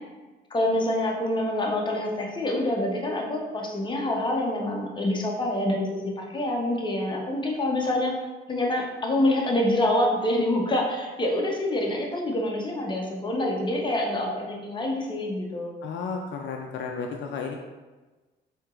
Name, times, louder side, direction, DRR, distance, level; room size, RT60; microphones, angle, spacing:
voice 1, 0.5-8.1 8.5-15.7, left 1 dB, 25° left, -1 dB, 0.7 m, -26 dB
voice 2, 15.8-17.5, left 5 dB, 70° left, 2 dB, 0.4 m, -33 dB
4.4 x 2.8 x 2.4 m, 1.2 s
cardioid pair, 90°, 20 cm